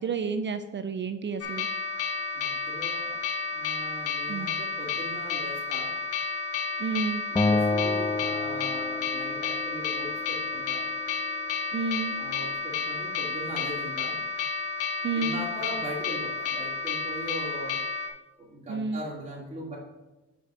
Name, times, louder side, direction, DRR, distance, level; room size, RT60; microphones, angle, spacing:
voice 1, 0.0-1.7 4.3-4.5 6.8-7.2 11.7-12.2 15.0-15.4 18.7-19.0, right 5 dB, 40° right, 9 dB, 0.5 m, -30 dB
sound 1, 1.4-18.1, left 4 dB, 50° left, 1.2 m, -31 dB
voice 2, 2.3-3.2 3.5-5.9 7.3-10.9 12.2-14.2 15.1-17.8 18.4-19.8, equal, 20° right, -7 dB, 2.4 m, -40 dB
Acoustic guitar, 7.4-10.6, left 3 dB, 15° left, 0.4 m, -29 dB
5.1 x 5.0 x 6.2 m, 1.0 s
cardioid pair, 90°, 30 cm